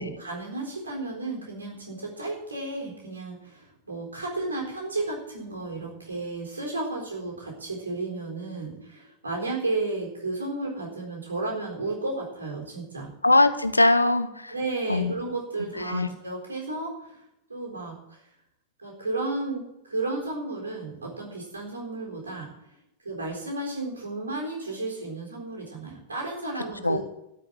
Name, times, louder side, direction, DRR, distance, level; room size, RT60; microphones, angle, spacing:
voice 1, 0.0-13.1 14.5-17.2 17.5-18.2 18.8-22.5 23.0-27.0, right 2 dB, 75° right, 0 dB, 4.0 m, -33 dB
voice 2, 13.2-14.5 14.9-15.1 15.7-16.1 26.8-27.0, left 2 dB, 85° left, 11 dB, 0.8 m, -21 dB
12.5 x 5.8 x 9.1 m, 0.85 s
figure-of-eight pair, 90°, 0 cm